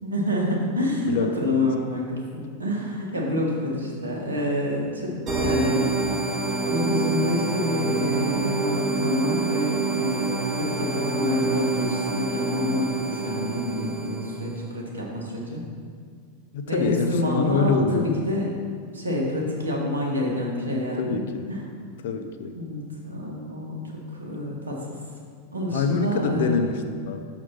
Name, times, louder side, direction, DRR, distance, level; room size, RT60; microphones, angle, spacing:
voice 1, 0.0-5.9 6.6-15.7 16.7-18.5 18.9-21.2 21.5-21.6 22.5-23.8 24.2-24.8 25.5-26.6, left 1 dB, 75° right, -2 dB, 1.5 m, -27 dB
voice 2, 1.1-1.6 16.5-18.1 21.0-21.5 22.0-22.5 25.7-27.3, left 4 dB, 55° left, 7 dB, 0.6 m, -25 dB
sound 1, 5.3-14.6, right 3 dB, 25° right, 1.4 m, -26 dB
6.1 x 5.8 x 5.7 m, 2.1 s
figure-of-eight pair, 90°, 0 cm